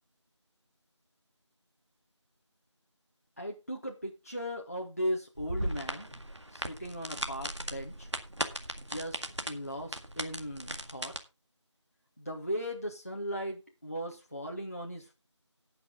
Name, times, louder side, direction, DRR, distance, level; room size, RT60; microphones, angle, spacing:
voice 1, 3.4-6.2 6.5-8.1 8.8-9.2 9.5-11.1 12.2-15.1, equal, 30° left, -1 dB, 1.1 m, -37 dB
sound 1, 5.4-11.2, right 1 dB, 70° right, 1.9 m, -37 dB
18.0 x 6.0 x 3.7 m, 0.27 s
figure-of-eight pair, 180°, 16 cm